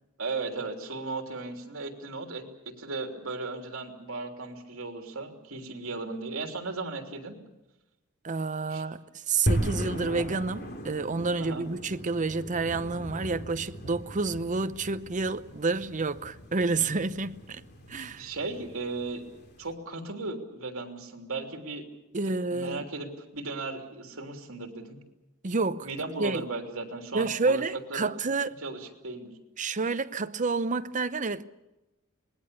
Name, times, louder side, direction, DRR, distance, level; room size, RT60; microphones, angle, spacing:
voice 1, 0.2-7.4 8.7-8.8 11.4-11.6 18.2-19.2 19.6-21.9 22.3-25.0 25.8-27.6 27.9-28.1 28.6-29.3 29.8-29.9, right 3 dB, 70° right, 3.2 m, -36 dB
voice 2, 8.2-17.6 17.9-18.3 22.1-22.9 25.4-25.9 26.2-26.4 27.1-28.5 29.6-31.4, right 3 dB, 35° right, 0.7 m, -29 dB
sound 1, 9.5-19.7, equal, 50° left, 3.1 m, -37 dB
26.5 x 20.5 x 7.0 m
head